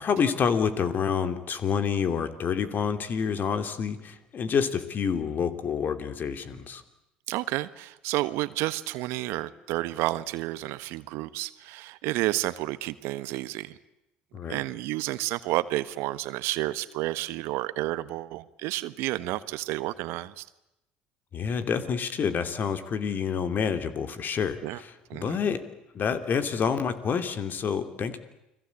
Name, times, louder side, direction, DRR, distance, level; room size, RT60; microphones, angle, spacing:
voice 1, 0.0-6.8 14.3-14.6 21.3-25.6 25.9-28.2, left 6 dB, 45° left, 10 dB, 2.9 m, -28 dB
voice 2, 7.3-13.8 14.5-20.5 24.6-24.8 25.1-25.4, right 17 dB, 65° right, 14 dB, 1.3 m, -30 dB
30.0 x 21.5 x 8.4 m, 0.88 s
hypercardioid pair, 65°, 5 cm